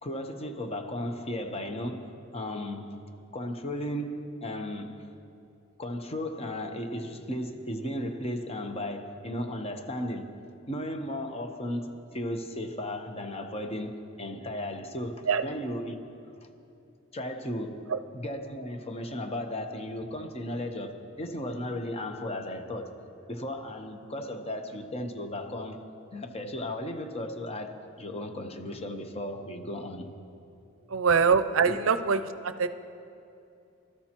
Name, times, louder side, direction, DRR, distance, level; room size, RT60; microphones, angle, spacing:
voice 1, 0.0-3.0 3.3-5.1 5.8-10.4 10.7-16.0 17.1-23.0 23.3-25.8 26.1-30.1 31.7-31.8, left 1 dB, 30° left, 5 dB, 0.9 m, -35 dB
voice 2, 30.9-32.7, right 5 dB, 70° right, 12 dB, 0.5 m, -24 dB
24.5 x 13.0 x 3.0 m, 2.7 s
head